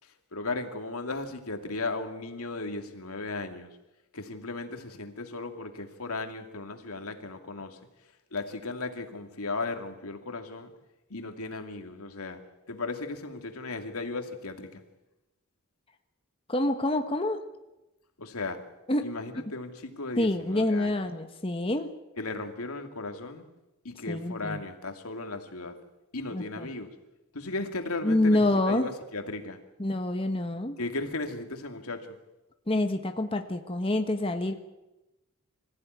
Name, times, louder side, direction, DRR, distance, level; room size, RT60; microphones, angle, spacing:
voice 1, 0.0-3.8 4.1-7.8 8.3-10.7 11.1-12.4 12.7-14.8 18.2-18.6 19.0-20.9 22.2-23.5 23.8-25.8 26.1-26.9 27.3-29.6 30.8-32.2, left 3 dB, 85° left, 6 dB, 2.6 m, -36 dB
voice 2, 16.5-17.4 18.9-19.0 20.2-21.9 24.1-24.6 26.3-26.7 28.0-28.9 29.8-30.8 32.7-34.6, left 1 dB, 25° left, 6 dB, 1.2 m, -27 dB
25.5 x 15.0 x 9.5 m, 1.0 s
head